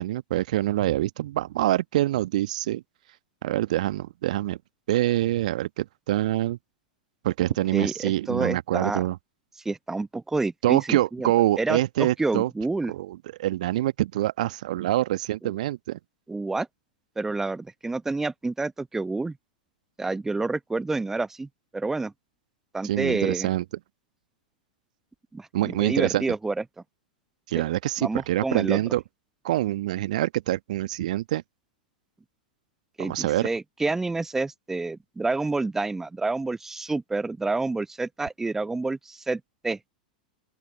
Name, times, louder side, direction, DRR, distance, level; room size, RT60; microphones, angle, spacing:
voice 1, 0.0-2.8 3.4-4.6 4.9-6.6 7.2-9.2 10.6-12.5 12.9-16.0 22.8-23.6 25.5-26.2 27.5-29.0 29.4-31.4 33.0-33.5, right 14 dB, 60° right, 1.2 m, -25 dB
voice 2, 7.7-9.0 9.6-11.3 11.6-12.9 15.4-15.5 16.3-16.7 17.2-19.4 20.0-22.1 22.7-23.5 25.3-26.5 28.0-28.8 33.0-39.8, right 3 dB, 10° right, 0.9 m, -28 dB
open air
figure-of-eight pair, 95°, 5 cm